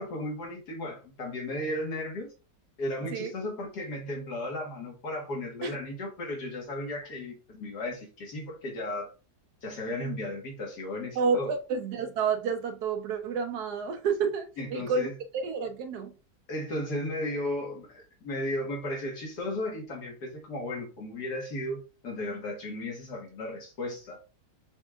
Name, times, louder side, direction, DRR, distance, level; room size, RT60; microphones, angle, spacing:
voice 1, 0.0-2.3 2.8-9.1 9.6-11.5 14.6-15.1 16.5-24.2, left 1 dB, 70° left, 1.9 m, -35 dB
voice 2, 11.2-15.1 15.3-16.1, right 5 dB, 70° right, 1.1 m, -29 dB
5.9 x 3.6 x 2.4 m
omnidirectional pair, 1.8 m